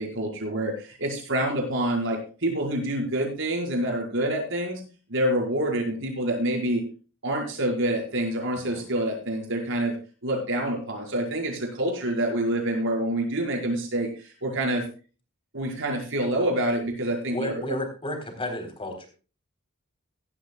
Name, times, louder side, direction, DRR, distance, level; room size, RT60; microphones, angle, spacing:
voice 1, 0.0-4.8 5.1-6.8 7.2-10.0 10.2-14.9 15.5-17.8, right 1 dB, 65° right, 1 dB, 5.3 m, -27 dB
voice 2, 17.3-19.1, left 1 dB, 25° left, 4 dB, 3.8 m, -32 dB
16.0 x 13.5 x 2.3 m, 0.35 s
head